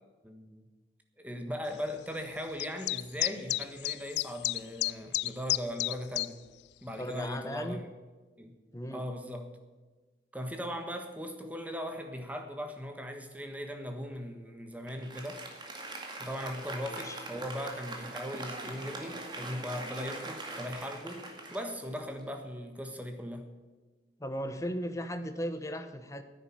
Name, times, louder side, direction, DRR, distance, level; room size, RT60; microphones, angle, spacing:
voice 1, 0.2-0.6 1.2-6.4 6.8-7.9 8.4-8.5 8.9-9.6 10.3-15.5 16.2-21.3 21.5-23.6, equal, 10° right, 1.4 m, -39 dB
sound 1, 2.6-6.3, left 17 dB, 80° left, 0.4 m, -31 dB
voice 2, 7.0-7.8 8.7-9.0 16.9-17.2 24.2-26.2, equal, 20° left, 1.0 m, -36 dB
Applause, 14.9-22.5, right 2 dB, 25° right, 2.1 m, -42 dB
10.5 x 9.4 x 8.8 m
head